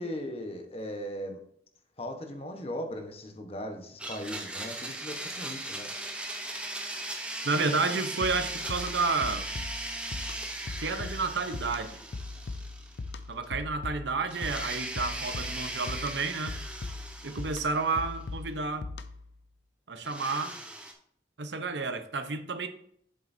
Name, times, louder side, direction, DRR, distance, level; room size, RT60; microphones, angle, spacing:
voice 1, 0.0-1.4 2.0-5.9, equal, 35° left, 5 dB, 1.1 m, -38 dB
Domestic sounds home sounds, 4.0-13.2 13.4-13.5 14.3-18.2 20.0-20.9, right 1 dB, 5° right, 0.9 m, -38 dB
voice 2, 7.4-9.4 10.7-12.0 13.3-16.6 17.2-18.9 19.9-20.5 21.4-22.7, right 4 dB, 75° right, 9 dB, 0.9 m, -30 dB
sound 1, 8.2-19.3, left 3 dB, 70° left, 0.6 m, -40 dB
7.7 x 7.5 x 2.7 m, 0.67 s
head